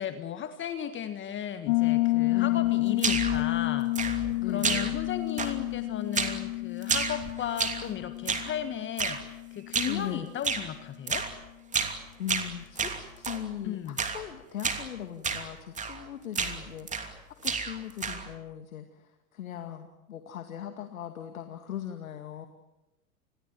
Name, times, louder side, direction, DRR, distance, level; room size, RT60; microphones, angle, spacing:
voice 1, 0.0-11.3 13.6-14.0, left 9 dB, 25° left, 10 dB, 1.6 m, -35 dB
Piano, 1.7-10.2, left 21 dB, 50° left, 1.1 m, -30 dB
voice 2, 2.3-2.7 4.4-5.0 9.9-10.3 12.2-22.5, left 10 dB, 75° left, 7 dB, 2.3 m, -39 dB
sound 1, 3.0-3.4 3.9-4.4 4.6-5.1 5.4-5.8 6.1-6.4 6.8-7.9 8.3-8.5 9.0-9.2 9.7-10.0 10.4-10.7 11.1-11.3 11.7-12.0 12.3-13.4 14.0-14.2 14.6-14.9 15.2-15.5 15.8-16.0 16.3-17.2 17.4-18.3, right 5 dB, 15° right, 2.9 m, -31 dB
29.0 x 21.5 x 7.7 m, 0.96 s
hypercardioid pair, 100°, 42 cm